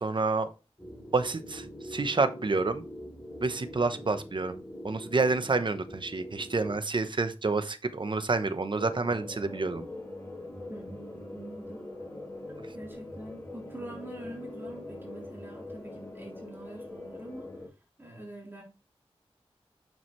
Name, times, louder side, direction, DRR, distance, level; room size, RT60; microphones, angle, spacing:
voice 1, 0.0-0.5 1.1-2.8 3.4-4.6 4.8-9.9, right 3 dB, 50° right, 10 dB, 0.9 m, -28 dB
sound 1, 0.8-6.8 8.8-17.7, left 1 dB, 25° left, 4.2 m, -43 dB
voice 2, 10.7-11.9 12.7-17.5 18.0-18.6, right 1 dB, 20° right, -3 dB, 3.4 m, -45 dB
7.0 x 6.3 x 3.2 m, 0.31 s
wide cardioid pair, 80°, 11 cm